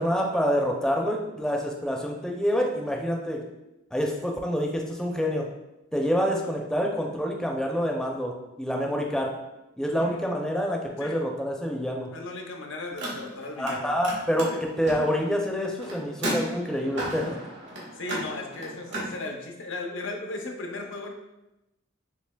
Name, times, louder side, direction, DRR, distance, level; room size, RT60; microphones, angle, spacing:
voice 1, 0.0-3.4 3.9-5.5 5.9-9.3 9.8-12.1 13.6-14.5 14.8-17.4, equal, 5° left, 0 dB, 0.4 m, -27 dB
voice 2, 9.9-10.2 11.0-11.2 12.1-13.9 14.5-14.6 17.9-21.1, left 2 dB, 80° left, 2 dB, 0.6 m, -36 dB
Car, 12.9-13.8 14.0-19.1, right 1 dB, 70° right, 1.3 m, -34 dB
6.5 x 2.8 x 2.2 m, 0.94 s
head